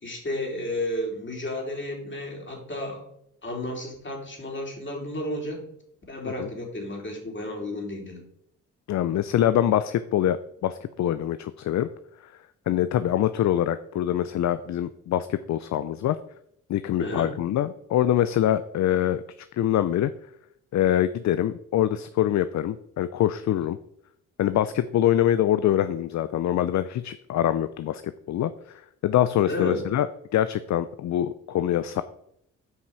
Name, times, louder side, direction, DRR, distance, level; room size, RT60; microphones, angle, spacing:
voice 1, 0.0-3.0 3.4-5.6 6.1-8.2 17.0-17.3 29.5-29.9, left 1 dB, 35° left, 0 dB, 3.7 m, -32 dB
voice 2, 8.9-10.4 10.6-11.9 12.2-12.3 12.7-16.2 16.7-19.2 19.5-20.1 20.7-23.8 24.4-30.1 30.3-32.0, left 11 dB, 55° left, 13 dB, 0.5 m, -24 dB
7.9 x 5.5 x 6.0 m, 0.74 s
supercardioid pair, 55°, 34 cm